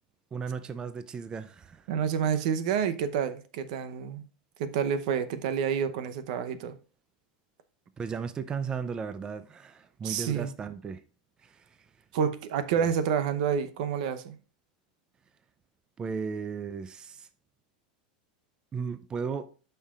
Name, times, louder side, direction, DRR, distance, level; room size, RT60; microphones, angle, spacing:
voice 1, 0.3-1.9 8.0-11.0 11.4-11.8 12.8-12.9 16.0-17.3 18.7-19.5, right 6 dB, 20° right, 0.4 m, -35 dB
voice 2, 1.9-4.2 4.6-6.8 10.0-10.5 12.1-14.4, right 7 dB, 65° right, 0.8 m, -28 dB
12.5 x 5.6 x 2.4 m
supercardioid pair, 140°, 4 cm